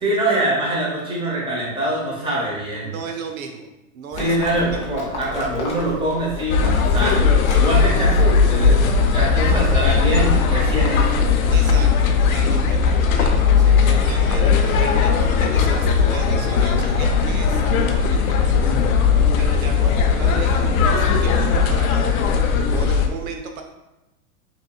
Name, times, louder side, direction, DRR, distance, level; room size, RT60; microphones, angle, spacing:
voice 1, 0.0-2.9 4.2-11.2, right 1 dB, 10° right, -5 dB, 1.1 m, -24 dB
voice 2, 2.8-3.7 3.9-4.9 5.3-5.7 7.0-7.1 9.3-9.8 11.5-23.6, right 5 dB, 65° right, 4 dB, 0.6 m, -35 dB
Livestock farm animals working animals, 4.1-9.3, left 3 dB, 15° left, 0.5 m, -33 dB
sound 1, 6.5-23.1, left 5 dB, 65° left, 0.6 m, -17 dB
5.3 x 2.9 x 2.3 m, 0.95 s
hypercardioid pair, 135°, 45 cm